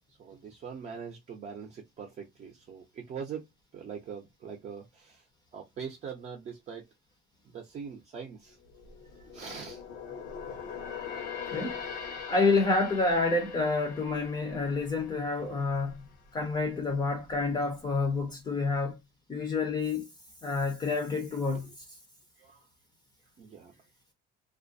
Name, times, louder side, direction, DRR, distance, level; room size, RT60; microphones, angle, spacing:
voice 1, 0.1-3.5 3.7-5.3 5.5-6.8 7.4-8.6 9.3-9.8 10.8-10.9 21.5-21.7 22.4-22.7 23.4-23.8, right 6 dB, 35° right, 0.7 m, -42 dB
sound 1, 8.5-16.1 16.4-16.7 17.2-17.9 18.2-18.3, left 6 dB, 65° left, 0.9 m, -42 dB
voice 2, 12.3-16.0 16.3-19.0 19.3-20.1 20.4-21.7, left 3 dB, 20° left, 0.6 m, -28 dB
2.4 x 2.1 x 2.5 m
cardioid pair, 175°, 20 cm